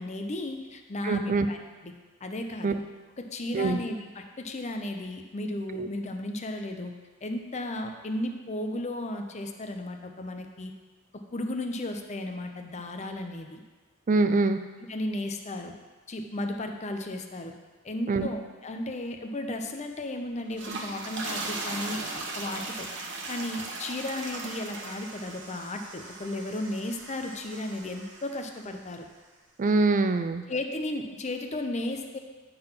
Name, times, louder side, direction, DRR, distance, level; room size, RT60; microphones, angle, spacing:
voice 1, 0.0-1.6 1.8-1.9 2.2-2.8 3.2-6.9 7.2-10.7 11.1-13.6 14.9-15.7 16.1-17.6 17.8-22.9 23.3-29.1 30.5-32.2, left 1 dB, 35° left, 5 dB, 0.6 m, -34 dB
voice 2, 1.0-1.5 2.6-2.8 3.5-3.8 5.7-5.9 14.1-14.6 18.1-18.3 29.6-30.5, right 3 dB, 40° right, 9 dB, 0.4 m, -24 dB
sound 1, 20.4-28.7, right 3 dB, 60° right, 1.1 m, -38 dB
9.2 x 3.9 x 5.7 m, 1.3 s
head